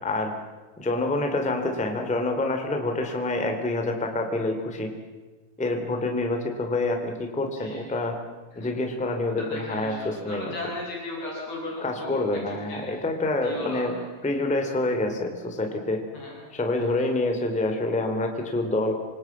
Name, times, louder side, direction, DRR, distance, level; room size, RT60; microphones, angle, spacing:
voice 1, 0.0-0.3 0.8-4.9 5.6-8.2 8.5-10.5 11.8-13.9 14.2-16.0 16.5-18.9, left 2 dB, ahead, 4 dB, 1.8 m, -27 dB
voice 2, 7.4-7.8 8.5-8.7 9.4-12.8 13.4-14.1 16.1-16.4 16.8-17.1, left 1 dB, 50° left, -4 dB, 8.7 m, -36 dB
27.5 x 27.0 x 7.4 m, 1.3 s
omnidirectional pair, 5.7 m